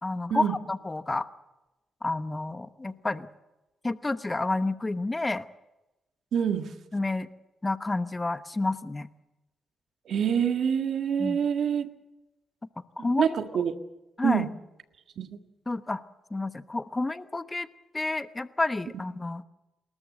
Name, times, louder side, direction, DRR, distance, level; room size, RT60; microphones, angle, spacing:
voice 1, 0.0-1.3 2.0-3.3 3.8-5.4 6.9-7.3 7.6-9.1 11.2-11.4 12.8-13.3 14.2-14.5 15.7-16.0 16.3-17.7 17.9-19.4, left 2 dB, 25° left, 12 dB, 1.0 m, -30 dB
voice 2, 6.3-6.7 10.1-11.9 13.0-13.8 14.2-14.5 15.2-15.3, right 7 dB, 70° right, 7 dB, 1.6 m, -26 dB
29.5 x 13.5 x 7.7 m, 1.0 s
supercardioid pair, 60°, 0 cm